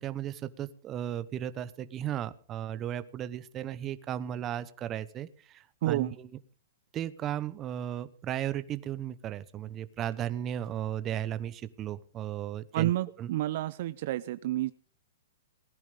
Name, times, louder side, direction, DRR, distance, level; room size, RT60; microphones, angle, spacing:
voice 1, 0.0-6.3 6.9-12.9 13.2-13.3, right 10 dB, 25° right, 13 dB, 1.1 m, -35 dB
voice 2, 5.8-6.2 12.7-14.7, right 15 dB, 55° right, 15 dB, 0.6 m, -29 dB
19.5 x 10.5 x 5.2 m, 0.41 s
hypercardioid pair, 145°, 0 cm